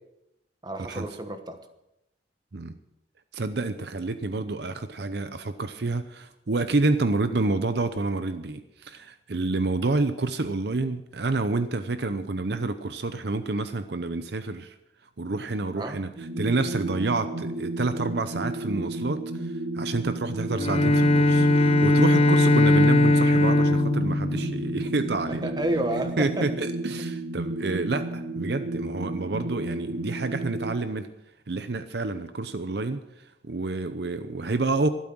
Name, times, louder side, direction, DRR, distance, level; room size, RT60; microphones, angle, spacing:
voice 1, 0.6-1.6 15.8-16.0 25.3-26.5, right 1 dB, 20° right, 7 dB, 1.2 m, -30 dB
voice 2, 3.3-14.7 15.2-25.5 26.2-31.1 31.5-33.0 33.4-34.9, right 3 dB, 60° right, 10 dB, 0.7 m, -28 dB
sound 1, 16.2-30.7, right 1 dB, 75° right, 1.1 m, -33 dB
Bowed string instrument, 20.5-25.1, left 1 dB, 30° left, 0.8 m, -20 dB
12.5 x 12.5 x 6.1 m, 0.88 s
head